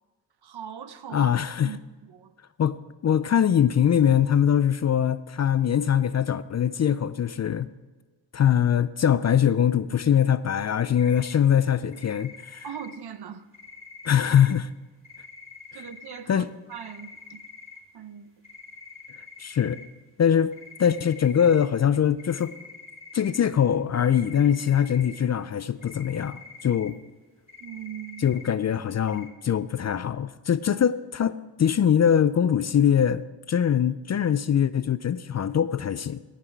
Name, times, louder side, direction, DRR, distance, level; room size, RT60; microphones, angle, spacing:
voice 1, 0.4-1.3 1.6-1.8 2.1-2.3 12.6-13.5 15.7-17.4 17.9-18.3 27.6-28.3, right 8 dB, 60° right, 0.9 m, -40 dB
voice 2, 1.1-1.7 2.6-2.8 3.0-7.7 8.3-12.7 14.0-14.7 16.3-16.5 19.4-19.8 20.2-22.5 23.1-27.0 28.2-36.2, left 9 dB, 40° left, 0.4 m, -22 dB
sound 1, 11.0-11.3 11.9-13.0 13.5-14.5 15.0-16.2 16.7-17.8 18.4-19.9 20.5-21.6 22.2-23.4 23.9-25.2 25.6-26.9 27.5-28.5 29.1-29.3, left 4 dB, 30° right, 3.4 m, -46 dB
17.0 x 5.9 x 4.6 m
cardioid pair, 65°, 44 cm